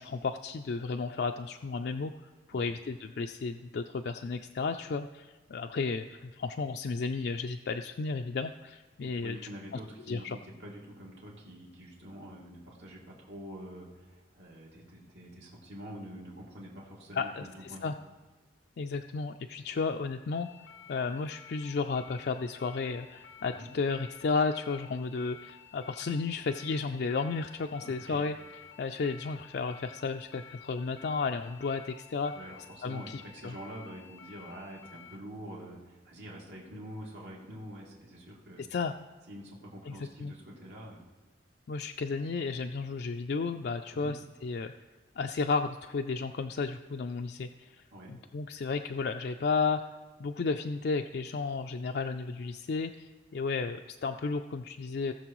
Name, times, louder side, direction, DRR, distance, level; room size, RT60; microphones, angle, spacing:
voice 1, 0.0-2.1 2.5-9.4 9.7-9.8 10.1-10.4 17.1-18.0 18.8-20.5 20.9-28.4 28.8-32.3 32.8-33.6 38.6-38.9 39.9-40.3 41.7-44.7 45.2-47.8 48.1-49.8 50.2-55.1, left 4 dB, 60° left, 5 dB, 0.4 m, -33 dB
voice 2, 9.2-17.9 23.5-23.7 27.8-28.2 32.3-38.6 39.3-41.0 43.9-44.1 47.9-48.1, equal, 75° right, -3 dB, 2.5 m, -46 dB
sound 1, 20.3-35.2, left 8 dB, 90° left, 0.8 m, -53 dB
18.5 x 6.8 x 3.0 m, 1.3 s
head